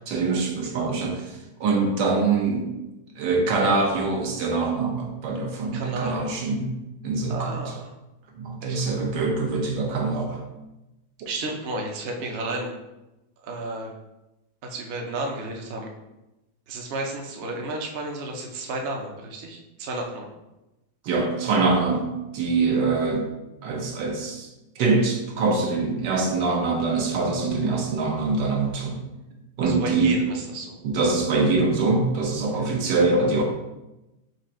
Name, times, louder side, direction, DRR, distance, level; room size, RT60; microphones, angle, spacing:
voice 1, 0.1-2.7 3.2-6.7 7.0-7.6 8.3-10.4 11.2-11.3 21.0-23.3 23.6-24.5 24.8-29.0 29.6-30.2 30.8-33.4, right 3 dB, 80° right, 1 dB, 1.5 m, -24 dB
voice 2, 5.7-6.2 7.3-7.9 8.6-9.0 11.2-12.7 13.4-13.9 14.6-15.9 16.7-20.3 29.6-30.7 32.6-32.7, right 2 dB, 60° right, 1 dB, 0.6 m, -32 dB
4.9 x 2.5 x 4.2 m, 0.97 s
omnidirectional pair, 1.9 m